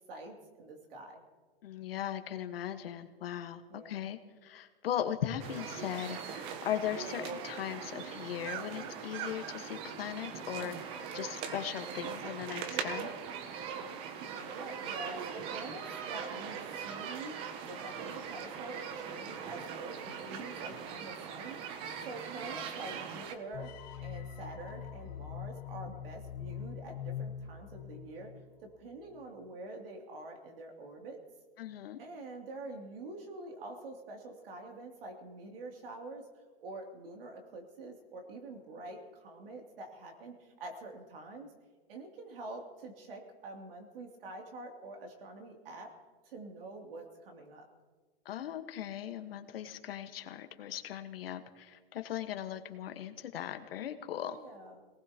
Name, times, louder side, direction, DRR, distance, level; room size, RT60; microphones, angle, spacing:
voice 1, 0.1-1.2 3.7-4.1 14.3-17.3 17.6-23.7 24.0-28.3 28.6-31.2 32.0-36.3 36.6-41.5 41.9-45.9 46.2-47.7 54.2-54.8, right 2 dB, 70° right, 1 dB, 2.9 m, -46 dB
voice 2, 1.6-13.1 31.6-32.0 48.2-54.4, left 10 dB, 70° left, 7 dB, 1.4 m, -38 dB
sound 1, 5.4-23.3, right 7 dB, 20° right, 0.6 m, -41 dB
sound 2, 23.5-28.6, left 8 dB, 25° left, 1.5 m, -43 dB
26.0 x 18.5 x 2.9 m, 1.4 s
supercardioid pair, 170°, 30 cm